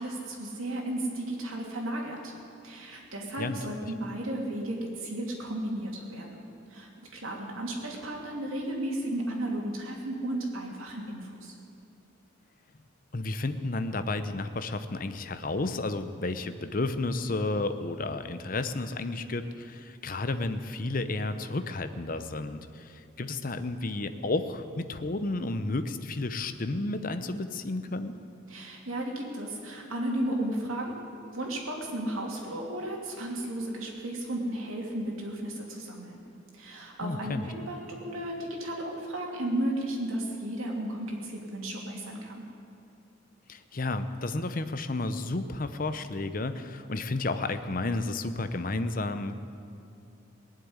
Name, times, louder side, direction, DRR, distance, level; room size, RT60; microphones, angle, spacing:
voice 1, 0.0-2.3 2.6-11.5 28.5-31.0 31.3-36.2 36.5-42.4, right 1 dB, 80° right, -1 dB, 2.9 m, -34 dB
voice 2, 13.1-28.2 37.0-37.5 43.5-49.4, left 2 dB, 40° left, 10 dB, 0.7 m, -32 dB
19.5 x 7.6 x 9.7 m, 2.5 s
head